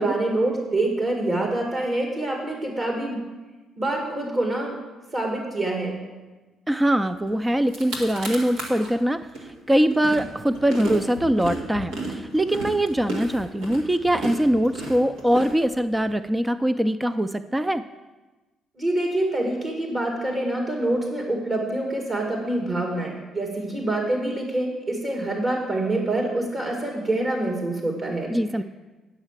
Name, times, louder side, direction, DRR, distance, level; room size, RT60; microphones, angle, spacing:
voice 1, 0.0-3.2 3.8-4.8 5.1-6.0 18.8-28.3, right 2 dB, 40° right, 0 dB, 2.0 m, -26 dB
voice 2, 6.7-17.8 28.3-28.6, right 1 dB, 15° right, 12 dB, 0.4 m, -23 dB
sound 1, 7.3-7.4 7.6-8.9 9.3-16.1, right 1 dB, 85° right, 1.9 m, -33 dB
9.7 x 5.6 x 7.4 m, 1.2 s
supercardioid pair, 65°, 0 cm